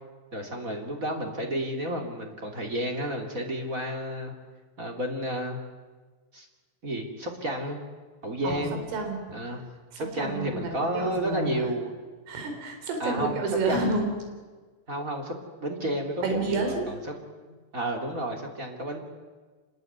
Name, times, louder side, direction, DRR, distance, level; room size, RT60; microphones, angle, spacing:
voice 1, 0.3-4.3 4.8-5.6 6.3-6.5 6.8-7.8 8.2-8.8 9.3-9.6 9.9-11.9 13.0-13.4 13.7-13.9 14.9-15.3 15.6-17.0 17.4-19.0, right 1 dB, 20° right, 2 dB, 2.4 m, -31 dB
voice 2, 8.4-9.2 9.9-11.7 12.3-14.1 16.2-16.9, right 3 dB, 75° right, 5 dB, 6.8 m, -30 dB
27.0 x 20.5 x 9.5 m, 1.4 s
omnidirectional pair, 5.8 m